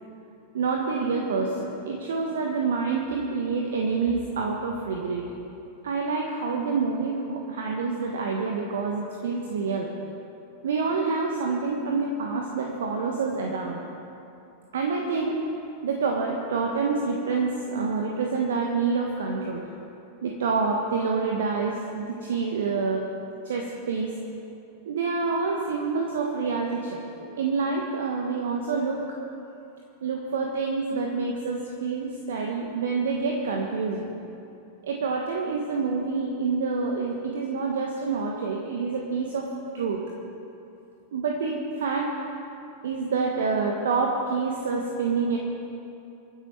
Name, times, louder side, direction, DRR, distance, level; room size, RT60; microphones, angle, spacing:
voice 1, 0.5-5.3 5.8-9.9 10.6-13.8 14.7-15.4 15.8-19.6 20.2-23.0 23.4-24.1 24.8-29.0 30.0-34.1 34.8-39.5 39.7-40.0 41.1-42.1 42.8-45.4, right 4 dB, 60° right, 1 dB, 1.4 m, -27 dB
24.0 x 9.9 x 4.7 m, 2.8 s
figure-of-eight pair, 90°, 0 cm